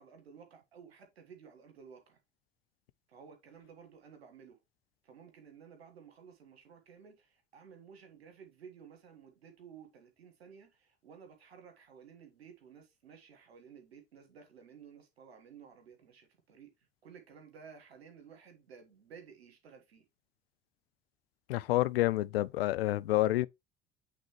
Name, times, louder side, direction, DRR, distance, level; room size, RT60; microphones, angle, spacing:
voice 1, 0.0-2.2 3.1-4.6 5.0-16.7 17.0-20.0, right 6 dB, 75° right, 1.6 m, -55 dB
voice 2, 21.5-23.5, left 16 dB, 70° left, 0.5 m, -28 dB
8.3 x 3.7 x 3.2 m
figure-of-eight pair, 60°, 31 cm